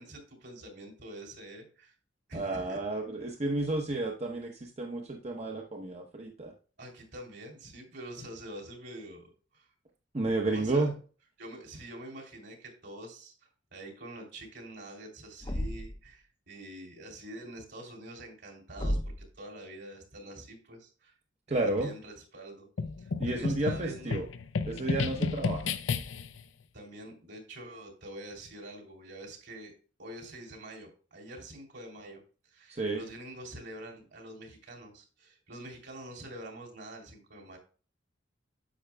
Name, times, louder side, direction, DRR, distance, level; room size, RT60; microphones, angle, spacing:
voice 1, 0.0-1.9 2.3-2.8 6.8-9.7 10.4-10.9 11.4-21.1 21.5-22.7 23.0-24.2 26.7-29.7 30.0-32.2 32.5-37.6, right 1 dB, 65° right, 0 dB, 3.0 m, -46 dB
voice 2, 2.3-6.5 10.1-11.0 21.5-21.9 23.2-24.3 24.6-25.7 32.7-33.0, right 2 dB, 35° right, 2 dB, 0.8 m, -31 dB
Thump thud, 15.4-16.1 18.8-19.3, equal, 25° left, 0.6 m, -32 dB
sound 1, 22.8-26.4, left 4 dB, 85° left, 0.6 m, -32 dB
9.9 x 7.8 x 2.2 m, 0.38 s
head